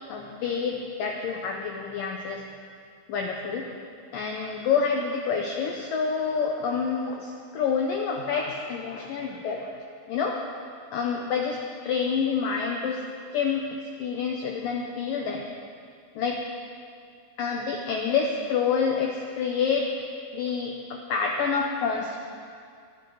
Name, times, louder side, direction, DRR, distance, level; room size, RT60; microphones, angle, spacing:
voice 1, 0.0-2.4 3.1-3.8 4.1-9.8 10.1-10.4 10.9-13.0 13.3-15.5 16.2-16.4 17.4-19.9 20.3-22.2, left 6 dB, 85° left, 1 dB, 1.9 m, -28 dB
24.0 x 11.5 x 3.9 m, 2.3 s
omnidirectional pair, 5.3 m